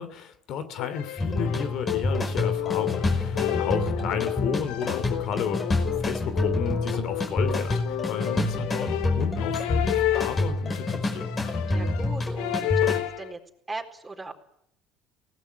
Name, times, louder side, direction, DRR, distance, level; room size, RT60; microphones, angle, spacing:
voice 1, 0.0-11.3, left 7 dB, 60° left, 12 dB, 2.8 m, -33 dB
sound 1, 0.8-13.3, left 14 dB, 85° left, 1.8 m, -31 dB
sound 2, 1.2-13.0, left 2 dB, 25° left, 5.5 m, -28 dB
voice 2, 11.7-13.4 13.7-14.3, right 3 dB, 10° right, 1 dB, 4.2 m, -38 dB
24.5 x 18.0 x 10.0 m, 0.76 s
cardioid pair, 125°, 0 cm